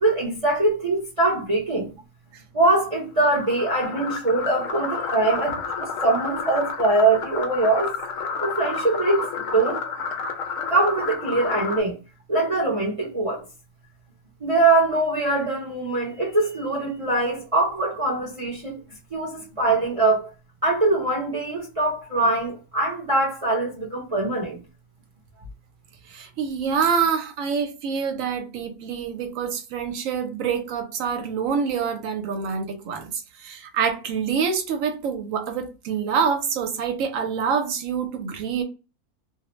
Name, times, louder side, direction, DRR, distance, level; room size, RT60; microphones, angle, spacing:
voice 1, 0.0-1.9 2.5-7.9 8.4-9.8 10.7-12.0 12.3-13.4 14.4-18.8 19.1-20.3 20.6-24.6, right 2 dB, 45° right, 0.4 m, -23 dB
sound 1, 3.2-11.8, left 5 dB, 70° left, 0.8 m, -30 dB
voice 2, 26.1-33.1 33.4-38.6, right 6 dB, 70° right, 0.9 m, -26 dB
2.5 x 2.0 x 3.0 m
omnidirectional pair, 1.6 m